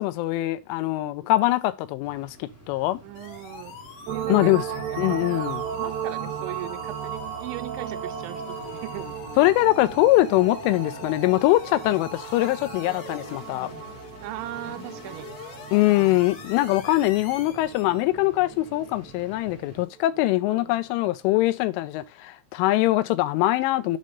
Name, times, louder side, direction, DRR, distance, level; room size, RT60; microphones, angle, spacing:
voice 1, 0.0-3.0 4.3-4.7 5.0-5.6 9.4-13.7 15.7-24.0, left 17 dB, 85° left, 3.1 m, -22 dB
sound 1, 2.0-19.8, right 1 dB, 5° left, 1.0 m, -50 dB
voice 2, 3.0-3.8 4.1-5.2 5.7-9.2 14.2-15.3 15.8-16.2 20.5-20.8, right 18 dB, 85° right, 2.9 m, -39 dB
sound 2, 3.1-18.0, left 6 dB, 65° left, 2.2 m, -43 dB
sound 3, 4.1-19.8 20.2-20.3, right 9 dB, 70° right, 2.9 m, -36 dB
7.5 x 3.3 x 5.1 m
omnidirectional pair, 5.7 m